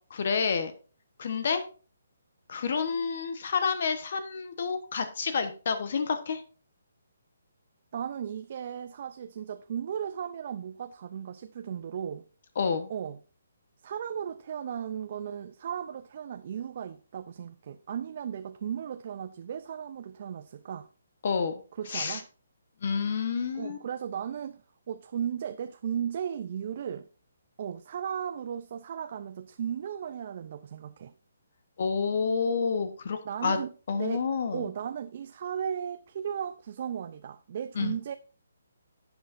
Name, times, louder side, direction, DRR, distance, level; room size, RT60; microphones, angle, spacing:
voice 1, 0.1-0.7 1.2-1.6 2.5-6.4 12.6-12.9 21.2-21.5 21.9-22.2 22.8-23.8 31.8-33.6 33.9-34.7 37.8-38.0, left 5 dB, 55° left, 1.0 m, -29 dB
voice 2, 7.9-12.2 12.9-13.2 13.8-20.9 21.8-22.3 23.5-24.6 24.9-27.1 27.6-31.1 33.2-34.2 34.5-38.1, right 8 dB, 45° right, 0.5 m, -36 dB
11.0 x 8.1 x 2.5 m
hypercardioid pair, 155°, 0 cm